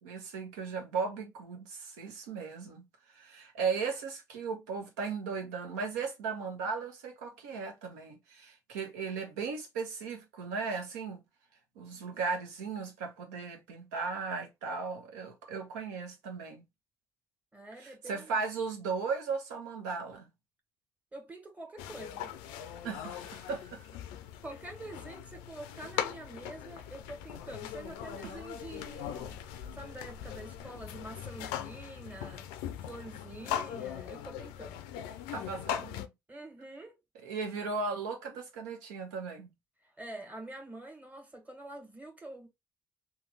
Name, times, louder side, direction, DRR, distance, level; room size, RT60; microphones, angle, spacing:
voice 1, 0.0-11.2 11.8-16.6 17.8-20.3 22.8-23.8 28.2-28.3 35.3-36.1 37.2-39.5, right 5 dB, 85° right, 0.8 m, -36 dB
voice 2, 17.5-18.4 21.1-22.9 24.4-29.4 29.7-32.4 32.8-34.9 36.3-37.0 39.8-42.5, right 2 dB, 15° right, 1.6 m, -46 dB
sound 1, 21.8-36.1, left 10 dB, 80° left, 0.4 m, -40 dB
3.2 x 2.3 x 3.1 m
hypercardioid pair, 45°, 9 cm